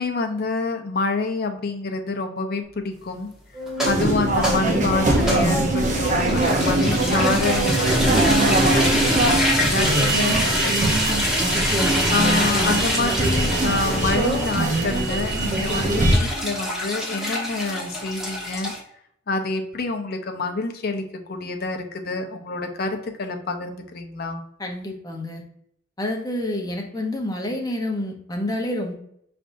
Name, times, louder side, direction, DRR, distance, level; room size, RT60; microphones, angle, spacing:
voice 1, 0.0-3.3 3.8-11.2 12.1-18.7 19.3-21.0 21.3-24.4, left 3 dB, 55° left, 5 dB, 0.7 m, -27 dB
Organ, 3.5-10.1, equal, 20° right, 1.7 m, -33 dB
sound 1, 3.7-18.8, equal, 5° right, 1.1 m, -25 dB
sound 2, 3.8-16.2, right 2 dB, 40° right, 0.8 m, -22 dB
voice 2, 24.6-25.4 26.0-28.9, left 1 dB, 20° left, 1 dB, 0.8 m, -28 dB
5.3 x 3.4 x 2.6 m, 0.71 s
head